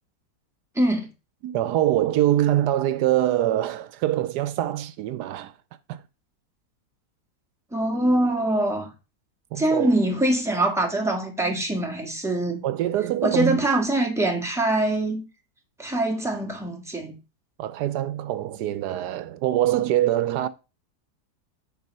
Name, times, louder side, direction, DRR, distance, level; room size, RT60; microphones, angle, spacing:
voice 1, 0.7-1.1 7.7-8.9 9.6-12.6 13.2-15.2 15.8-17.1, right 1 dB, ahead, 1.7 m, -23 dB
voice 2, 1.4-5.6 5.9-6.0 9.5-9.9 12.6-13.7 17.6-20.5, right 13 dB, 80° right, 1.2 m, -24 dB
8.3 x 4.7 x 5.3 m
omnidirectional pair, 1.8 m